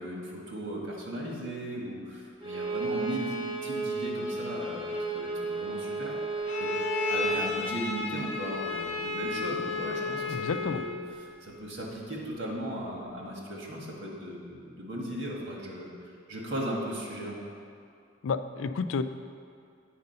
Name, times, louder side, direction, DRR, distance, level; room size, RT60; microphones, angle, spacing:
voice 1, 0.0-6.1 6.6-6.7 7.1-15.9 16.3-17.4, right 1 dB, 65° right, -2 dB, 1.7 m, -37 dB
Bowed string instrument, 2.4-7.4, right 3 dB, 25° right, 0.8 m, -33 dB
Bowed string instrument 2, 6.5-11.1, left 4 dB, 30° left, 0.8 m, -33 dB
voice 2, 10.3-10.8 18.2-19.0, left 5 dB, 80° left, 11 dB, 0.4 m, -30 dB
8.5 x 5.3 x 5.5 m, 2.4 s
head